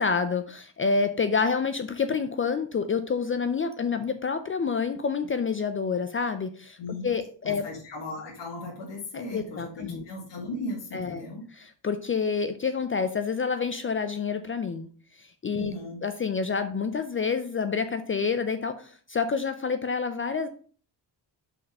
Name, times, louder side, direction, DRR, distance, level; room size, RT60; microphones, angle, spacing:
voice 1, 0.0-6.8 7.0-7.7 9.1-10.0 10.9-14.9 15.1-15.7 16.0-20.5, left 5 dB, 30° left, 9 dB, 0.4 m, -28 dB
voice 2, 7.4-11.5 15.6-16.0, left 2 dB, 70° left, -3 dB, 1.9 m, -37 dB
5.5 x 4.2 x 5.3 m, 0.43 s
wide cardioid pair, 165°, 44 cm